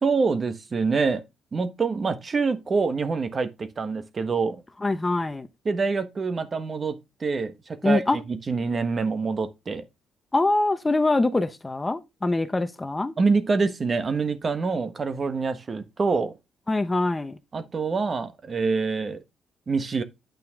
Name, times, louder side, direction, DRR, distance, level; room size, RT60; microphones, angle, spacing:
voice 1, 0.0-1.2 1.5-4.6 5.6-9.8 13.2-16.3 17.5-19.2 19.7-20.0, right 4 dB, 35° right, 1.4 m, -26 dB
voice 2, 4.8-5.5 7.8-8.2 10.3-13.1 16.7-17.4, left 2 dB, 20° left, 0.9 m, -24 dB
9.1 x 5.7 x 3.6 m
cardioid pair, 90°, 0 cm